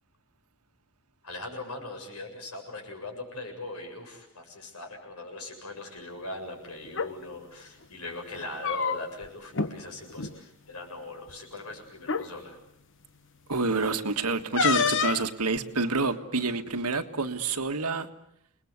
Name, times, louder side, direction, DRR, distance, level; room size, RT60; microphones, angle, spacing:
voice 1, 1.2-12.6, left 2 dB, 85° left, 7.5 m, -40 dB
sound 1, 6.8-7.1 8.4-9.3 9.5-9.7 10.1-10.3 11.3-11.4 12.0-12.3 14.6-15.3, left 6 dB, 60° left, 1.1 m, -27 dB
voice 2, 13.5-18.1, right 3 dB, 90° right, 1.8 m, -28 dB
29.5 x 20.5 x 8.3 m
head